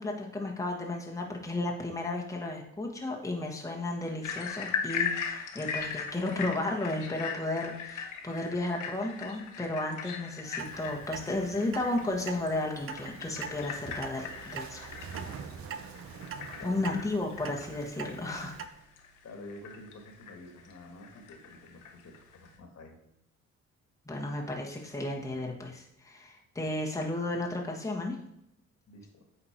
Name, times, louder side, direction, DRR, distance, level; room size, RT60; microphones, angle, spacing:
voice 1, 0.0-14.9 16.6-18.6 24.1-28.2, left 2 dB, 10° left, -1 dB, 1.4 m, -33 dB
sound 1, 4.2-22.5, left 6 dB, 85° left, 1.3 m, -39 dB
Clock, 10.6-18.7, right 7 dB, 45° right, 0.7 m, -44 dB
sound 2, 12.8-18.9, right 6 dB, 65° right, 1.0 m, -50 dB
voice 2, 16.6-17.0 19.2-23.0 28.9-29.3, left 1 dB, 60° left, 4 dB, 1.8 m, -48 dB
8.7 x 4.4 x 4.5 m, 0.77 s
cardioid pair, 90°, 30 cm